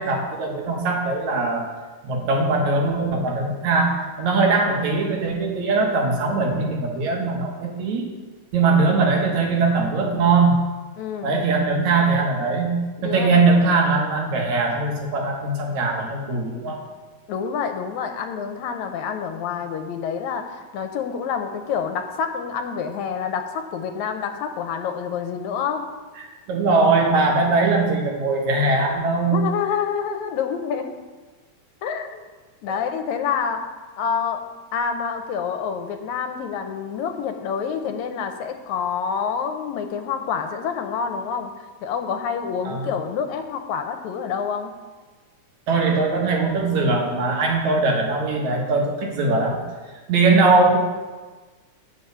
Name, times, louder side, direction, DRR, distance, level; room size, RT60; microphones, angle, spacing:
voice 1, 0.0-1.7 2.0-8.1 8.5-10.6 11.2-16.8 26.5-29.4 42.6-42.9 45.7-49.6 50.1-50.8, right 3 dB, 75° right, 0 dB, 2.6 m, -21 dB
voice 2, 11.0-11.3 13.0-13.3 17.3-25.8 29.3-30.9 31.8-32.3 32.6-33.6 34.0-34.4 34.7-41.5 41.8-44.7, left 6 dB, 80° left, 6 dB, 1.9 m, -27 dB
8.7 x 5.4 x 6.6 m, 1.3 s
omnidirectional pair, 3.4 m